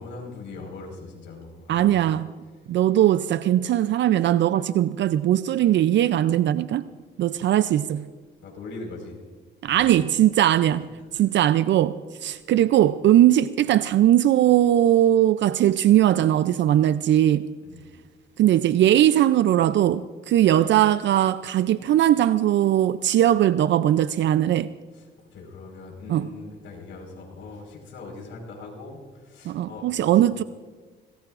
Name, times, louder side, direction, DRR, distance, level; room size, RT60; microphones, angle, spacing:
voice 1, 0.0-2.0 8.4-9.2 9.7-9.9 11.0-11.1 17.6-17.9 24.9-30.1, left 3 dB, 75° left, 4.8 m, -41 dB
voice 2, 1.7-2.3 2.7-6.9 7.2-8.1 9.6-10.9 11.1-17.5 18.4-24.7 26.1-26.3 29.5-30.4, right 12 dB, 65° right, 0.5 m, -20 dB
25.5 x 19.5 x 2.5 m
cardioid pair, 90°, 20 cm